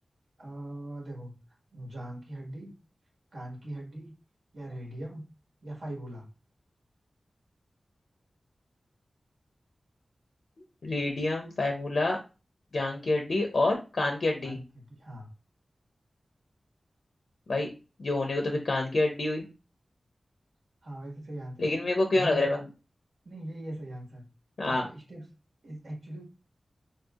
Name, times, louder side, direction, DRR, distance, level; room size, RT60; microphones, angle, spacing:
voice 1, 0.4-1.3 1.7-2.7 3.3-4.1 4.5-5.2 5.6-6.3 14.4-15.3 20.8-21.8 22.1-22.5 23.2-24.2 24.7-25.2 25.6-26.2, right 1 dB, 85° right, -2 dB, 1.4 m, -40 dB
voice 2, 10.8-12.2 12.7-14.6 17.5-17.7 18.0-19.5 21.6-22.6 24.6-24.8, left 2 dB, 75° left, 2 dB, 0.5 m, -27 dB
3.2 x 2.6 x 2.4 m, 0.31 s
wide cardioid pair, 65°, 0 cm